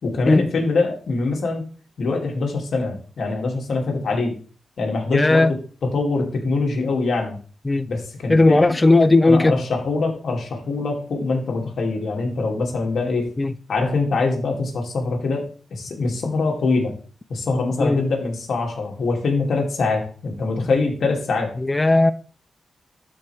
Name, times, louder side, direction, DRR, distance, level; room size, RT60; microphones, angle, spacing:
voice 1, 0.0-1.6 2.0-4.3 4.8-7.4 7.9-8.8 9.2-13.3 13.7-16.9 17.3-21.5, left 3 dB, 70° left, 2.4 m, -23 dB
voice 2, 5.1-5.5 7.7-7.9 8.3-9.6 13.4-13.5 17.8-18.0 21.6-22.1, left 2 dB, 20° left, 0.4 m, -16 dB
12.5 x 4.9 x 3.3 m
wide cardioid pair, 105°, 0 cm